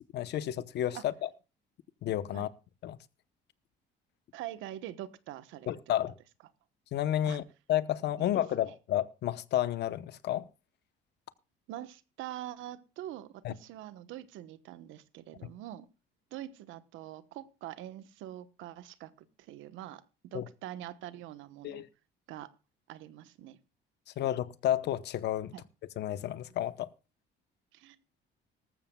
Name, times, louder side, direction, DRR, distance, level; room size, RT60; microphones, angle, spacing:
voice 1, 0.1-1.3 2.0-2.5 2.8-3.0 5.7-6.1 6.9-7.4 7.7-10.5 13.4-13.5 20.3-20.4 21.6-21.9 24.2-25.5 26.0-26.9, left 12 dB, 60° left, 0.9 m, -31 dB
voice 2, 4.3-5.7 7.3-7.4 8.2-8.3 8.6-8.7 11.7-15.9 16.3-19.1 19.4-20.0 20.3-21.8 22.3-22.5 22.9-23.6 25.5-25.6 27.7-28.0, right 13 dB, 80° right, 1.1 m, -44 dB
19.0 x 14.5 x 2.3 m
cardioid pair, 135°, 20 cm